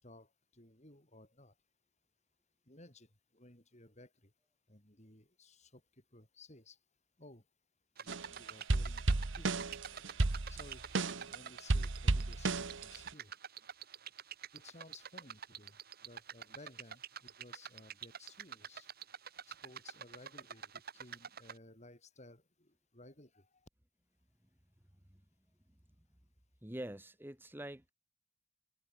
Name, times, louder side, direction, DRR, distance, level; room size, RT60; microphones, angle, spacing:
voice 1, 0.0-1.5 2.7-4.3 4.7-5.8 6.1-6.8 7.2-7.4 8.0-9.0 9.3-9.7 10.5-13.3 14.5-18.9 19.5-23.7, left 2 dB, 35° left, 7.9 m, -58 dB
sound 1, 8.0-21.6, right 7 dB, 50° right, 2.8 m, -48 dB
sound 2, 8.1-8.3 8.7-11.3 11.7-13.1, right 2 dB, 65° right, 1.1 m, -33 dB
voice 2, 26.6-27.9, right 1 dB, 10° right, 1.4 m, -45 dB
head